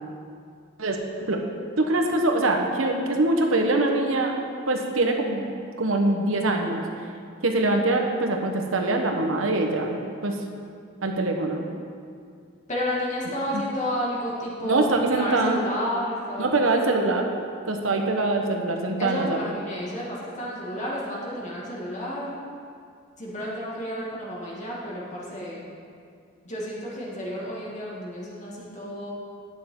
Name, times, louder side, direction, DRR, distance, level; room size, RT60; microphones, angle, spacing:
voice 1, 0.8-1.4 1.8-4.3 4.7-5.5 5.8-6.8 7.4-10.0 10.2-10.4 11.0-11.6 13.5-13.6 14.6-15.6 16.4-17.3 17.7-19.5, right 2 dB, 85° right, 3 dB, 1.2 m, -23 dB
voice 2, 12.7-16.7 19.0-22.4 23.2-25.7 26.4-29.1, equal, 40° left, -5 dB, 2.1 m, -31 dB
11.5 x 9.5 x 3.8 m, 2.3 s
head